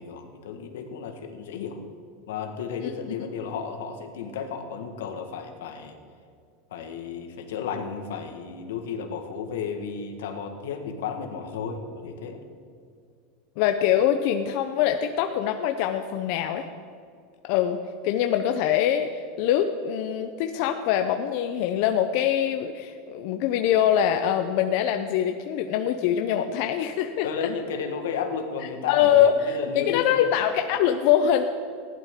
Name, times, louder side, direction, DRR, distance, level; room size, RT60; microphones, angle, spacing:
voice 1, 0.0-1.8 2.3-6.0 6.7-12.4 27.2-30.3, left 6 dB, 90° left, 5 dB, 1.4 m, -33 dB
voice 2, 13.6-16.7 17.5-17.8 18.0-27.5 28.9-31.4, left 10 dB, 60° left, 6 dB, 0.6 m, -23 dB
15.5 x 11.0 x 3.7 m, 2.3 s
supercardioid pair, 140°, 0 cm